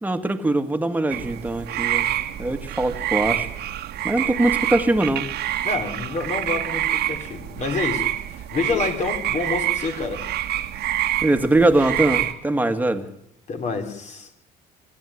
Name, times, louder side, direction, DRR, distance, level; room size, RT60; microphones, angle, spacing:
voice 1, 0.0-2.1 2.4-3.5 4.0-5.3 11.2-13.1, right 2 dB, 10° right, 2.0 m, -22 dB
sound 1, 1.1-12.3, right 13 dB, 75° right, 1.8 m, -27 dB
voice 2, 5.6-10.3 13.5-14.3, left 4 dB, 45° left, 3.6 m, -28 dB
26.0 x 13.5 x 10.0 m
cardioid pair, 110°, 17 cm